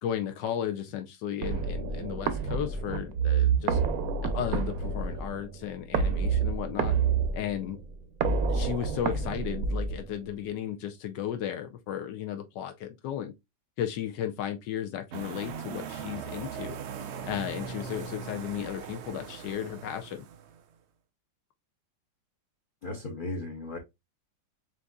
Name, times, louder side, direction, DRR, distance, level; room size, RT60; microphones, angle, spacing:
voice 1, 0.0-3.8 4.2-7.0 7.3-7.8 8.5-13.3 13.8-16.8 17.2-20.3, left 10 dB, 80° left, 1.3 m, -34 dB
sound 1, 1.4-10.4, right 5 dB, 65° right, 1.0 m, -28 dB
sound 2, 15.1-20.6, right 6 dB, 85° right, 0.6 m, -40 dB
voice 2, 22.8-23.8, left 2 dB, 45° left, 0.6 m, -36 dB
7.4 x 2.6 x 2.2 m
omnidirectional pair, 1.9 m